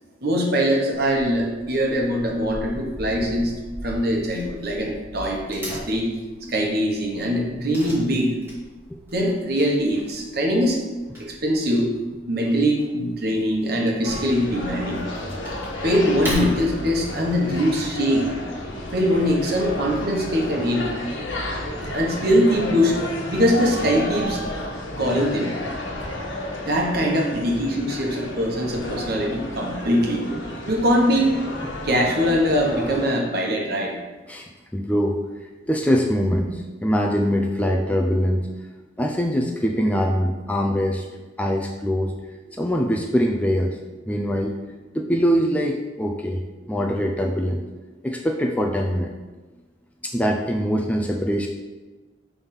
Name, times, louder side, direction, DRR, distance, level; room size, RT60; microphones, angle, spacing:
voice 1, 0.2-3.5 3.8-6.1 6.5-8.4 9.1-10.8 11.2-11.9 12.3-15.0 15.8-18.3 18.9-20.9 21.9-23.0 23.3-24.4 25.0-25.5 26.6-30.2 30.7-31.3 31.8-34.0, equal, 55° right, 0 dB, 1.2 m, -22 dB
Wood / Tearing, 0.9-20.5, equal, 10° right, 2.2 m, -40 dB
sound 1, 14.0-33.0, left 1 dB, 85° left, 1.2 m, -32 dB
voice 2, 34.3-35.2 35.7-38.5 39.0-41.1 41.4-42.1 42.5-43.8 44.1-44.5 44.9-46.4 46.7-47.6 48.0-49.1 50.0-51.5, equal, 5° left, 1 dB, 0.4 m, -23 dB
6.1 x 3.5 x 5.6 m, 1.2 s
head